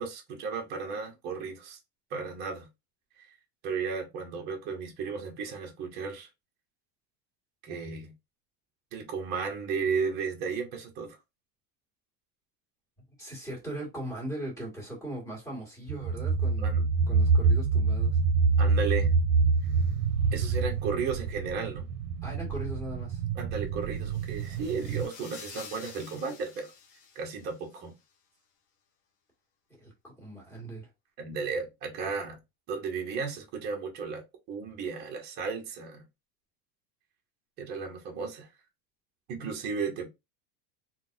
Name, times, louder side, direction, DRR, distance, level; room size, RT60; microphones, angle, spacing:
voice 1, 0.0-1.8 2.1-2.7 3.2-3.3 3.6-6.3 7.6-8.1 8.9-11.2 16.6-16.8 18.6-19.1 20.3-21.9 23.3-26.7 27.2-27.9 31.2-32.4 32.7-36.0 37.6-38.5 39.3-40.1, right 5 dB, 25° right, 0.5 m, -34 dB
voice 2, 13.2-16.7 17.1-18.2 22.2-23.2 29.8-29.9 30.2-30.9, right 1 dB, 5° left, 1.4 m, -39 dB
sound 1, 15.9-25.1, right 4 dB, 65° right, 0.6 m, -26 dB
sound 2, 23.9-27.8, left 6 dB, 45° left, 0.5 m, -49 dB
3.8 x 2.1 x 2.5 m
cardioid pair, 180°, 46 cm